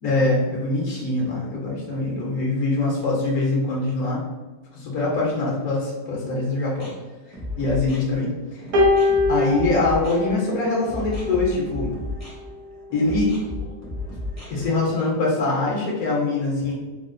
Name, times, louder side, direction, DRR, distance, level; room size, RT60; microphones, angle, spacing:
voice 1, 0.0-4.2 4.7-6.9 7.3-8.6 9.3-11.9 12.9-13.3 14.5-16.7, left 2 dB, 80° left, -4 dB, 1.2 m, -23 dB
sound 1, 6.6-14.7, left 2 dB, 20° right, 0.4 m, -34 dB
sound 2, 8.7-11.2 12.2-12.4, left 2 dB, 85° right, 1.1 m, -22 dB
3.4 x 2.4 x 2.5 m, 1.3 s
omnidirectional pair, 1.6 m